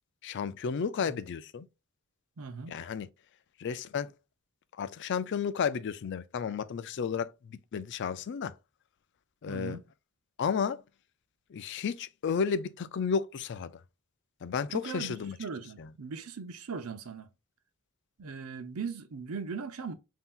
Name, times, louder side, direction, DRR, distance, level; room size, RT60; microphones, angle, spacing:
voice 1, 0.2-1.7 2.7-3.1 3.6-4.1 4.7-8.5 9.4-9.8 10.4-10.8 11.5-13.7 14.4-15.4 15.8-15.9, left 6 dB, 55° left, 0.4 m, -32 dB
voice 2, 2.4-2.8 9.5-9.8 14.7-17.3 18.2-19.9, right 5 dB, 75° right, 0.6 m, -39 dB
5.6 x 2.7 x 2.4 m
head